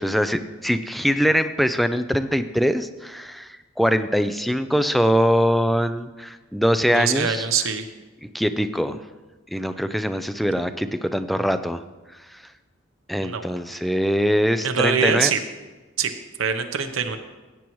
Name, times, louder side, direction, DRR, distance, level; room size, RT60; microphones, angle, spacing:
voice 1, 0.0-7.5 8.3-9.0 9.5-11.8 12.3-12.4 13.1-15.3, equal, ahead, 10 dB, 0.3 m, -22 dB
voice 2, 6.9-7.9 13.2-13.4 13.7-13.8 14.6-15.4 16.0-16.1 16.4-17.2, right 6 dB, 85° right, 6 dB, 0.8 m, -23 dB
16.0 x 8.5 x 3.1 m, 1.2 s
head